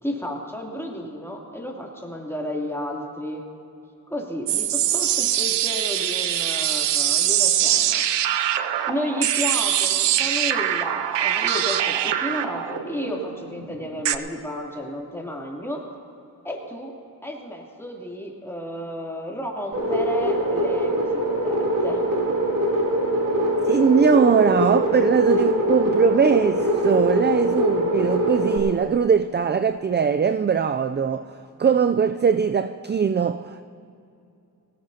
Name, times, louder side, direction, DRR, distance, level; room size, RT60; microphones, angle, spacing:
voice 1, 0.0-3.5 4.1-8.0 8.9-15.9 16.4-16.9 17.2-22.0, left 1 dB, 5° left, 2.9 m, -32 dB
sound 1, 4.5-14.2, right 11 dB, 90° right, 0.6 m, -23 dB
sound 2, 19.7-28.6, equal, 50° right, 3.1 m, -23 dB
voice 2, 23.6-33.6, right 6 dB, 25° right, 0.4 m, -21 dB
20.5 x 17.5 x 2.8 m
cardioid pair, 45°, 41 cm